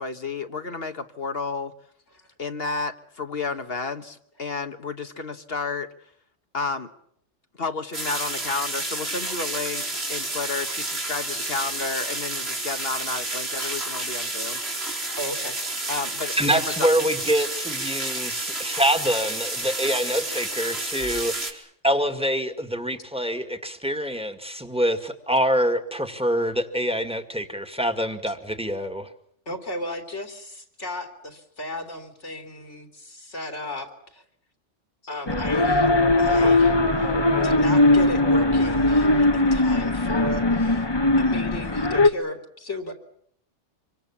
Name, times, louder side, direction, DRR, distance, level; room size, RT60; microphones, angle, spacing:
voice 1, 0.0-1.7 2.4-5.9 6.5-6.9 7.6-14.6 15.9-16.9, left 4 dB, 55° left, 8 dB, 1.5 m, -31 dB
sound 1, 7.9-21.5, right 2 dB, 55° right, 4.0 m, -30 dB
voice 2, 15.2-15.6 29.5-34.2 35.0-35.9 36.2-37.2 37.4-40.9 41.2-42.9, left 1 dB, 70° left, 5 dB, 3.6 m, -35 dB
voice 3, 16.3-29.1, equal, 5° right, 7 dB, 2.0 m, -25 dB
sound 2, 35.3-42.1, left 2 dB, 20° left, 1.1 m, -20 dB
26.5 x 24.5 x 7.3 m, 0.66 s
omnidirectional pair, 1.2 m